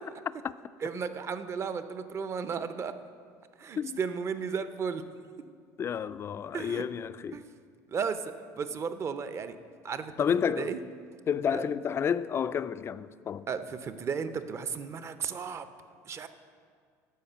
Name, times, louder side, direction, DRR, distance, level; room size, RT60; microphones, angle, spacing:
voice 1, 0.8-2.9 3.6-5.0 6.5-6.9 7.3-7.4 7.9-8.2 8.6-9.6 9.8-10.1 10.5-10.8 11.5-11.7 13.5-15.7 16.1-16.3, right 6 dB, 35° right, 0.6 m, -34 dB
voice 2, 5.8-7.4 10.2-10.7 11.3-13.5, left 7 dB, 35° left, 0.3 m, -30 dB
12.0 x 4.9 x 7.2 m
supercardioid pair, 95°, 8 cm